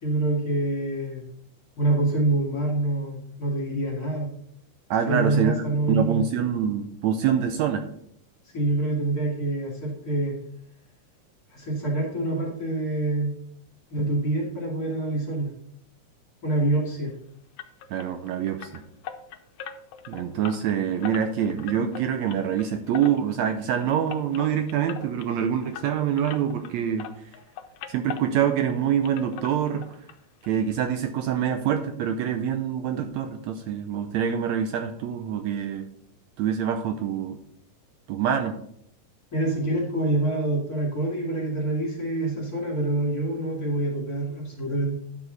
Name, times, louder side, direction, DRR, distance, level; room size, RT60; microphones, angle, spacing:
voice 1, 0.0-1.3 1.8-4.3 5.1-6.2 8.5-10.4 11.5-13.3 13.9-15.5 16.4-17.1 39.3-44.9, right 2 dB, 30° left, -2 dB, 2.7 m, -26 dB
voice 2, 4.9-7.9 17.9-18.8 20.1-27.1 27.9-30.0 30.4-35.9 36.4-37.4 38.1-38.6, right 8 dB, 75° right, 7 dB, 1.8 m, -25 dB
sound 1, 17.6-26.7 27.0-28.8 29.0-30.2 30.4-30.5 31.0-31.1 31.4-31.5, left 8 dB, 75° left, 2.0 m, -41 dB
10.5 x 7.1 x 4.0 m, 0.69 s
omnidirectional pair, 3.5 m